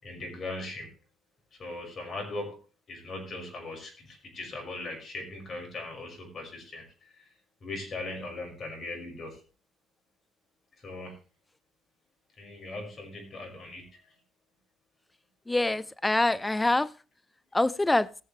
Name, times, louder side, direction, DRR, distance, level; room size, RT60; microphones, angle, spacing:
voice 1, 0.0-0.9 1.6-2.6 2.9-6.8 7.6-9.4 10.8-11.1 12.4-13.8, left 2 dB, 40° left, 6.0 m, -39 dB
voice 2, 15.5-16.9 17.5-18.1, left 2 dB, 15° left, 0.6 m, -25 dB
19.0 x 7.0 x 3.3 m
cardioid pair, 90°, 0 cm